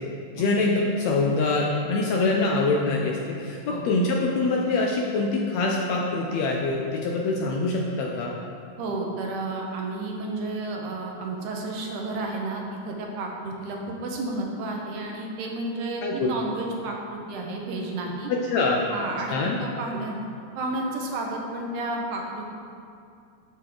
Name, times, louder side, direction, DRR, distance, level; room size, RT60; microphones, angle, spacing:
voice 1, 0.4-8.3 16.0-16.3 18.5-18.8 19.3-19.6, left 3 dB, 75° left, -1 dB, 1.7 m, -24 dB
voice 2, 8.8-18.3 18.9-20.2 20.6-22.5, right 2 dB, 75° right, 0 dB, 2.2 m, -31 dB
11.0 x 5.0 x 3.8 m, 2.4 s
omnidirectional pair, 3.7 m